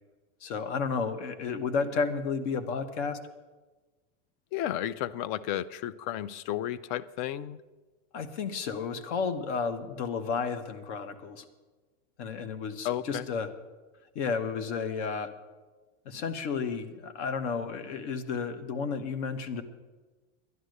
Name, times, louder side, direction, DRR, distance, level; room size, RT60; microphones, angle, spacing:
voice 1, 0.4-3.2 8.1-11.4 12.2-13.5 14.1-15.3 16.0-19.6, left 5 dB, 65° left, 11 dB, 1.2 m, -32 dB
voice 2, 4.5-7.6 12.8-13.3, left 12 dB, 40° left, 19 dB, 0.4 m, -33 dB
11.0 x 11.0 x 6.5 m, 1.3 s
supercardioid pair, 150°, 38 cm